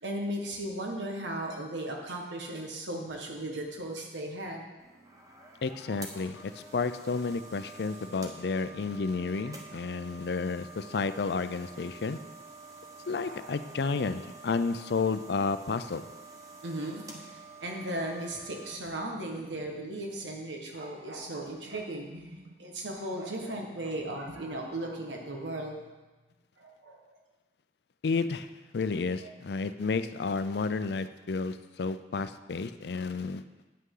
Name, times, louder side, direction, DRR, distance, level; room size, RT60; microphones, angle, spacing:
voice 1, 0.0-4.7 13.2-13.4 16.6-17.3 17.6-25.7 26.6-27.0 29.2-29.3, right 1 dB, 85° right, 1 dB, 1.4 m, -36 dB
sound 1, 4.8-18.8, right 3 dB, 20° right, 1.0 m, -49 dB
voice 2, 5.6-12.2 13.1-16.0 28.0-28.5 28.7-33.4, left 4 dB, 65° left, 12 dB, 0.4 m, -31 dB
9.5 x 8.3 x 3.8 m, 1.2 s
head